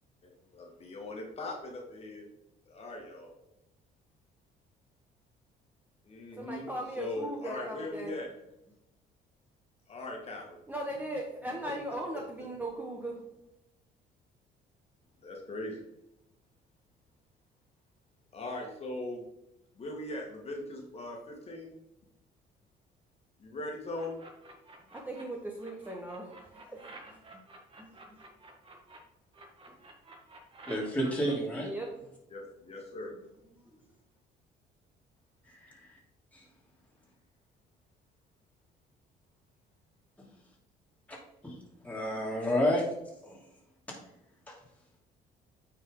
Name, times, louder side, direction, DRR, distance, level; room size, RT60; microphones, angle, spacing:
voice 1, 0.2-2.3 2.7-3.3 6.1-6.7 7.0-8.3 9.9-10.6 11.6-11.7 15.2-15.8 18.3-19.2 19.8-21.7 23.4-24.2 32.3-33.2, left 2 dB, 35° left, 0 dB, 1.7 m, -40 dB
voice 2, 6.4-8.1 10.7-13.2 24.9-27.2 27.8-28.2 31.6-31.9, right 1 dB, 10° right, -1 dB, 1.2 m, -38 dB
sound 1, 23.9-25.2 25.6-29.0 29.3-31.3, right 2 dB, 30° right, 1.6 m, -51 dB
voice 3, 30.7-31.7 35.5-35.9 41.4-41.6 41.8-42.8 43.2-43.4 44.5-44.6, equal, 10° left, -3 dB, 2.8 m, -30 dB
9.0 x 4.8 x 3.8 m, 0.87 s
cardioid pair, 110°, 17 cm